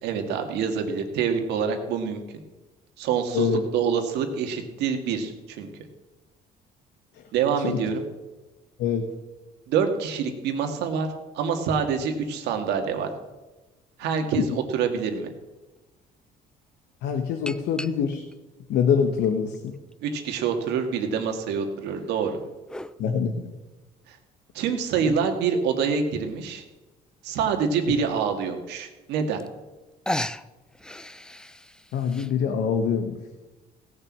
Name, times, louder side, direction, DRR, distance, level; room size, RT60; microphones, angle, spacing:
voice 1, 0.0-2.2 3.0-5.7 7.3-8.0 9.7-11.1 11.3-13.1 14.0-15.3 20.0-22.4 24.1-24.2 24.5-26.6 27.2-29.4, right 6 dB, 85° right, 5 dB, 2.0 m, -26 dB
sound 1, 15.7-15.8 17.5-18.3 19.0-20.0 20.7-20.8 21.9-23.0 24.7-24.8 25.2-25.3 25.5-25.6 26.0-26.3 27.3-27.4 27.9-28.0 29.1-29.2 29.4-29.8 30.0-32.3, left 1 dB, 5° left, 0.5 m, -35 dB
voice 2, 17.0-18.2 18.7-19.7 23.0-23.3 31.9-33.2, left 7 dB, 80° left, 6 dB, 1.2 m, -24 dB
17.0 x 6.7 x 7.5 m, 1.1 s
cardioid pair, 110°, 17 cm